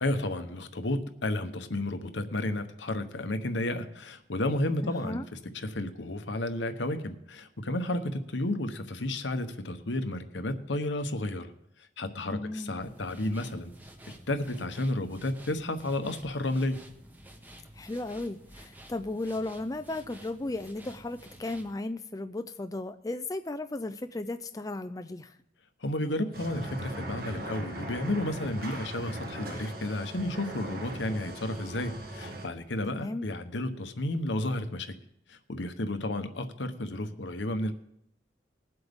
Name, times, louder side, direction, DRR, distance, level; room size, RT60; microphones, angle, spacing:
voice 1, 0.0-5.2 5.5-11.5 12.0-13.7 14.3-16.8 25.8-34.9 35.3-37.7, left 1 dB, 75° left, 8 dB, 1.0 m, -32 dB
voice 2, 4.8-5.2 12.3-12.8 17.7-25.4 32.9-33.3, left 2 dB, 20° left, 9 dB, 0.4 m, -35 dB
sound 1, 12.8-21.7, right 1 dB, 10° right, 1.0 m, -51 dB
sound 2, 26.3-32.5, right 1 dB, 50° right, 1.8 m, -39 dB
20.5 x 7.9 x 3.6 m, 0.75 s
head